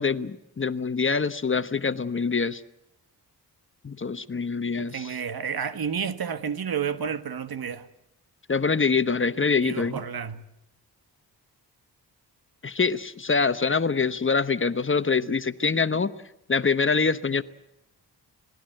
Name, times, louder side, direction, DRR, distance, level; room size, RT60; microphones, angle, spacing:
voice 1, 0.0-2.6 3.8-5.1 8.5-10.0 12.6-16.1 16.5-17.4, left 5 dB, 30° left, 1.0 m, -25 dB
voice 2, 4.8-7.9 9.6-10.4 15.2-15.3, right 7 dB, 65° right, 1.5 m, -31 dB
27.0 x 19.0 x 7.8 m
cardioid pair, 75°, 39 cm